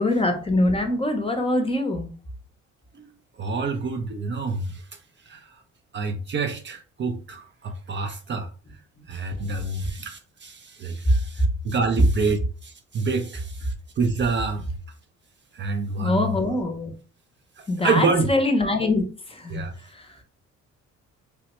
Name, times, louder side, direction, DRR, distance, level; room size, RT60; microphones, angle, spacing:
voice 1, 0.0-2.1 9.0-9.1 9.8-9.9 11.0-11.5 16.0-16.9 17.7-20.2, left 1 dB, 20° left, 0.6 m, -24 dB
voice 2, 3.4-4.9 5.3-5.6 5.9-8.5 9.1-14.7 15.5-16.2 17.6-18.3 19.5-19.7, right 4 dB, 40° right, 0.4 m, -27 dB
3.1 x 2.1 x 2.9 m
cardioid pair, 90°, 30 cm